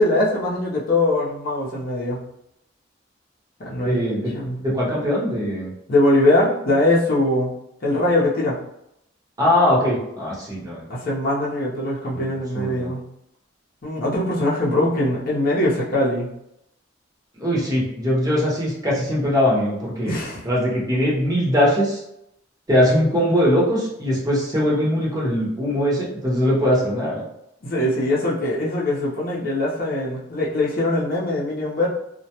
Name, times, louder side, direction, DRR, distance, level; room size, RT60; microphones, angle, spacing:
voice 1, 0.0-2.2 3.6-4.0 4.3-4.6 5.9-7.5 7.8-8.6 10.9-13.0 13.8-16.3 20.1-20.4 27.6-31.9, left 1 dB, 50° left, -5 dB, 0.6 m, -21 dB
voice 2, 3.8-4.3 4.6-5.7 9.4-10.8 12.1-12.2 12.5-12.9 17.4-22.0 22.7-27.2, equal, 20° right, -6 dB, 0.7 m, -21 dB
2.2 x 2.0 x 2.8 m, 0.80 s
head